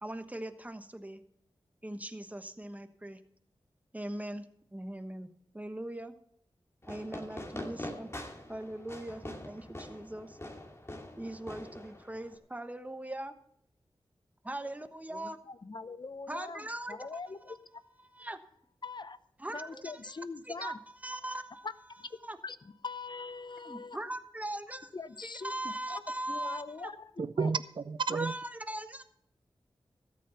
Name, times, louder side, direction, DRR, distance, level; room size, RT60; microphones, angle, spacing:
voice 1, 0.0-1.2 1.8-3.2 3.9-4.4 4.7-5.3 5.5-6.1 6.9-8.1 8.5-10.4 11.2-13.3 14.4-15.4 16.3-17.2 17.5-17.6 18.1-18.4 19.4-20.1 20.4-21.7 22.2-22.4 23.6-24.9 25.2-26.9 28.1-29.0, right 1 dB, 15° right, 9 dB, 1.2 m, -40 dB
Fireworks, 6.8-12.4, left 1 dB, 25° left, 2.4 m, -44 dB
voice 2, 15.1-17.6 18.8-19.2 19.5-20.8 21.6-21.7 22.0-22.1 22.4-22.6 22.8-24.0 24.9-26.0 26.3-27.5, left 4 dB, 50° left, 14 dB, 0.7 m, -42 dB
voice 3, 27.2-28.3, right 5 dB, 55° right, 15 dB, 0.5 m, -31 dB
13.5 x 8.5 x 5.7 m, 0.70 s
cardioid pair, 45°, 10 cm